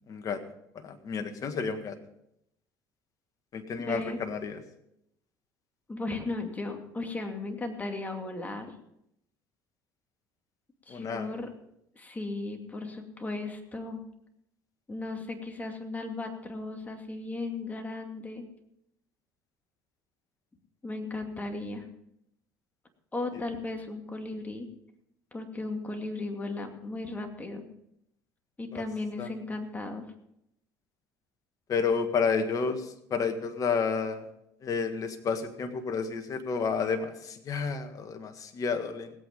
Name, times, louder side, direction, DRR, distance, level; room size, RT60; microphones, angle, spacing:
voice 1, 0.1-0.4 0.8-2.0 3.5-4.6 10.9-11.3 28.7-28.8 29.2-29.3 31.7-34.3 34.6-39.1, left 5 dB, 45° left, 7 dB, 1.7 m, -30 dB
voice 2, 3.8-4.3 5.9-8.7 10.9-11.5 12.0-14.0 14.9-18.5 20.8-21.9 23.1-24.7 25.3-27.6 28.6-30.0, left 2 dB, 20° left, 4 dB, 2.5 m, -36 dB
18.0 x 8.4 x 5.3 m, 0.77 s
supercardioid pair, 85°, 8 cm